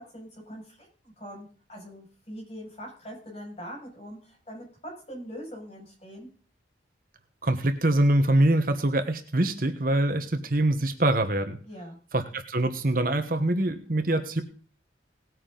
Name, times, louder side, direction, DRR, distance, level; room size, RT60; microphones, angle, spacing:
voice 1, 0.0-4.7 5.1-6.3 11.6-12.0, equal, 30° left, 0 dB, 6.4 m, -42 dB
voice 2, 7.4-11.6 12.1-14.4, right 1 dB, 50° right, 8 dB, 1.2 m, -24 dB
18.5 x 9.1 x 3.9 m, 0.42 s
head